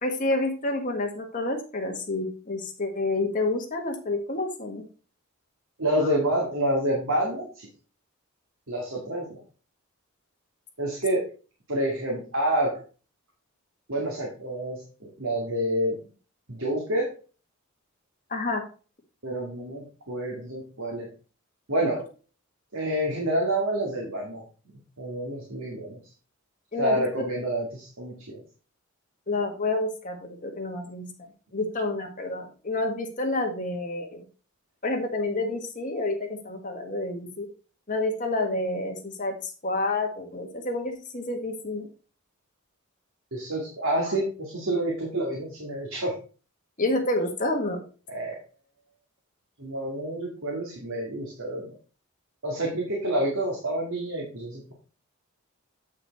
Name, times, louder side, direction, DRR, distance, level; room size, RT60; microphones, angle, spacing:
voice 1, 0.0-4.8 6.0-6.2 18.3-18.6 26.7-27.1 29.3-31.1 31.5-34.2 34.8-37.5 37.9-41.9 46.8-47.8, left 2 dB, 35° left, 3 dB, 1.7 m, -29 dB
voice 2, 5.8-7.7 8.7-9.4 10.8-11.2 11.7-12.8 13.9-16.0 16.5-17.1 19.2-21.1 21.7-22.0 22.7-24.4 25.0-26.0 26.8-28.4 43.3-46.1 48.1-48.4 49.6-51.7 52.4-54.7, right 1 dB, 70° right, -2 dB, 2.2 m, -28 dB
8.3 x 5.8 x 4.1 m, 0.37 s
head